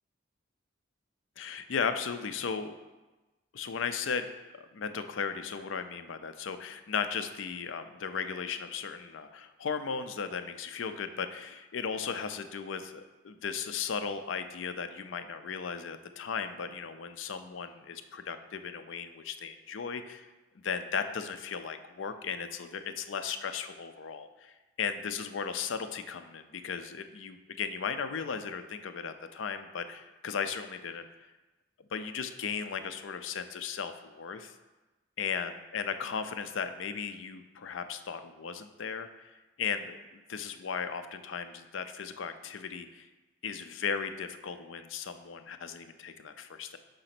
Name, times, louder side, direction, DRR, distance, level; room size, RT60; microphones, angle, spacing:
voice 1, 1.4-2.7 3.5-4.3 4.5-20.3 20.6-31.0 31.9-34.5 35.2-39.1 39.6-43.1 43.4-46.8, left 6 dB, 75° left, 9 dB, 0.4 m, -36 dB
5.1 x 3.9 x 5.8 m, 1.1 s
head